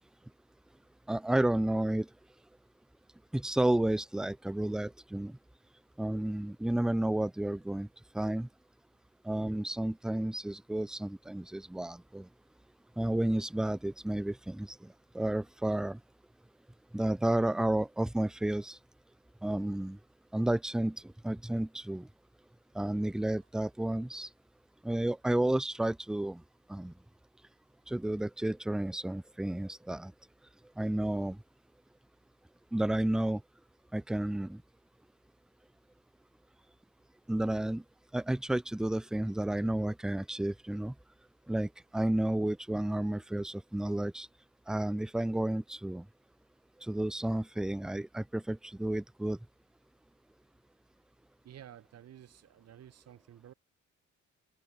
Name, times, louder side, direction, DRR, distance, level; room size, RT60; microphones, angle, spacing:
voice 1, 1.1-2.1 3.3-5.4 6.0-7.9 8.1-8.5 9.2-12.3 13.0-16.0 16.9-18.8 19.4-20.0 20.3-22.1 22.7-24.3 24.8-26.4 26.7-26.9 27.9-30.1 30.8-31.4 32.7-33.4 33.9-34.6 37.3-37.8 38.1-40.9 41.5-44.3 44.7-46.0 46.8-49.4, right 1 dB, ahead, 0.4 m, -31 dB
voice 2, 51.4-53.5, right 11 dB, 55° right, 1.1 m, -53 dB
cardioid pair, 90°, 30 cm